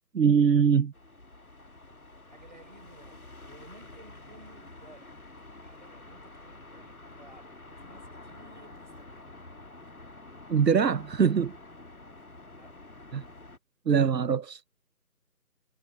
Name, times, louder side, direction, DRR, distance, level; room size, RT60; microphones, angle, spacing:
voice 1, 0.2-0.9 10.5-11.5 13.1-13.2 13.9-14.6, right 7 dB, 85° right, 0.7 m, -22 dB
sound 1, 0.9-13.6, left 2 dB, 60° left, 1.6 m, -49 dB
voice 2, 2.3-9.5 12.5-12.8, right 2 dB, 30° right, 4.2 m, -55 dB
figure-of-eight pair, 170°, 48 cm